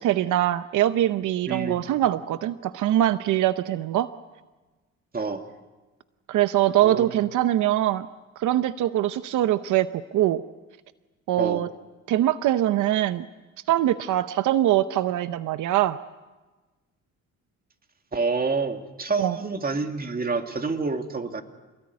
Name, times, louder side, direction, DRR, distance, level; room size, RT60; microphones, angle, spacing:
voice 1, 0.0-4.1 6.3-8.1 8.4-10.4 11.3-11.7 12.1-13.3 13.7-16.0 19.2-19.4, right 13 dB, 80° right, 12 dB, 0.8 m, -23 dB
voice 2, 1.5-1.8 5.1-5.5 6.8-7.1 11.4-11.6 18.1-21.4, right 4 dB, 30° right, 6 dB, 2.5 m, -28 dB
27.5 x 20.0 x 9.6 m, 1.2 s
cardioid pair, 90°, 30 cm